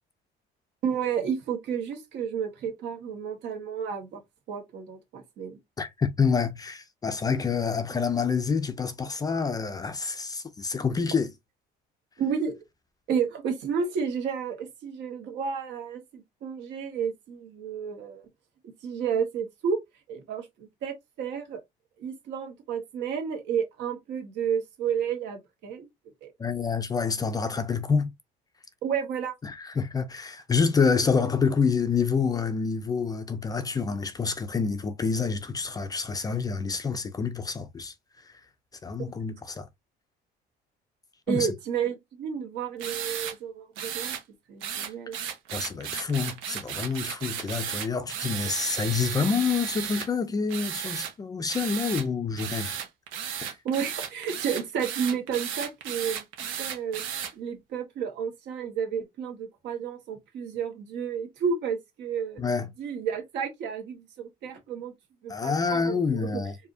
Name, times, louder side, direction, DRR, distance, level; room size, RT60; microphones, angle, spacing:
voice 1, 0.8-4.2 4.5-5.6 12.2-12.5 13.1-18.2 18.6-19.8 20.1-21.6 22.0-25.9 26.2-26.3 28.8-29.3 41.3-44.1 44.5-45.2 53.6-56.2 56.6-57.0 57.3-62.4 62.8-64.9 65.2-66.4, right 7 dB, 65° right, 1.7 m, -31 dB
voice 2, 5.8-11.3 26.4-28.1 29.4-37.9 38.2-38.3 38.8-39.7 41.3-41.5 45.5-52.8 53.4-53.5 62.4-62.7 65.3-66.6, left 5 dB, 20° left, 0.4 m, -27 dB
sound 1, 42.8-43.3 43.8-44.2 44.6-50.1 50.5-51.1 51.5-52.0 52.4-57.3, right 9 dB, 90° right, 1.1 m, -34 dB
4.6 x 2.7 x 2.7 m
cardioid pair, 160°, 20 cm